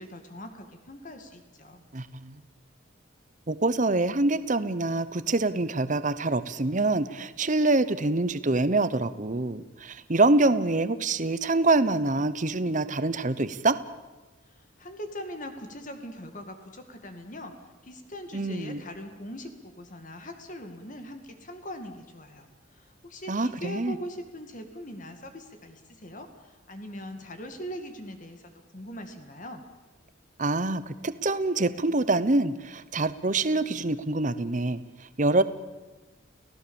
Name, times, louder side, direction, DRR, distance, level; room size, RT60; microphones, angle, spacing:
voice 1, 0.0-1.8 14.5-17.5 17.8-28.4 28.7-29.6, equal, 40° left, 6 dB, 2.1 m, -41 dB
voice 2, 1.9-2.3 3.5-13.7 18.3-18.8 23.3-24.0 30.4-34.8 35.2-35.4, right 2 dB, 40° right, 13 dB, 0.9 m, -25 dB
30.0 x 17.0 x 7.1 m, 1.2 s
head